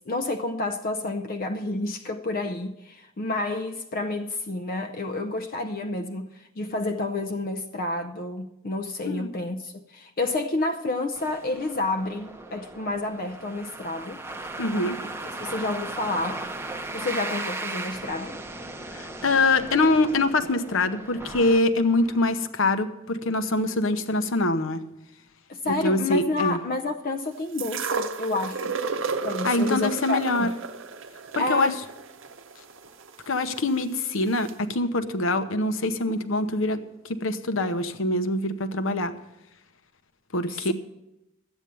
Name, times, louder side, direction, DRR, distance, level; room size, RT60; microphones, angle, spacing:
voice 1, 0.0-14.2 15.2-16.4 16.9-18.4 25.5-28.8 29.2-30.5 31.4-31.8 40.5-40.7, left 2 dB, 45° left, 0.5 m, -29 dB
sound 1, 11.2-22.3, right 2 dB, 10° right, 0.7 m, -37 dB
voice 2, 14.6-15.0 18.9-24.8 25.8-26.6 29.4-30.5 31.3-31.7 33.3-36.8 37.1-39.1 40.3-40.7, left 2 dB, 65° left, 0.9 m, -24 dB
sound 2, 27.6-33.6 34.5-34.6, right 4 dB, 60° right, 0.7 m, -32 dB
12.5 x 8.9 x 6.8 m
head